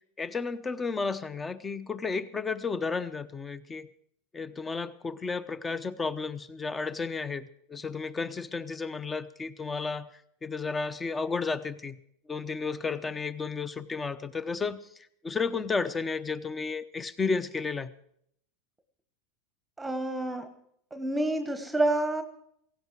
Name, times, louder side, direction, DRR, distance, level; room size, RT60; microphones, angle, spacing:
voice 1, 0.2-3.9 4.3-10.1 10.4-12.0 12.3-17.9, left 4 dB, 15° left, 14 dB, 0.9 m, -32 dB
voice 2, 19.8-20.5 20.9-22.2, right 2 dB, 5° right, 10 dB, 1.2 m, -28 dB
17.0 x 16.0 x 4.8 m, 0.69 s
supercardioid pair, 135°, 0 cm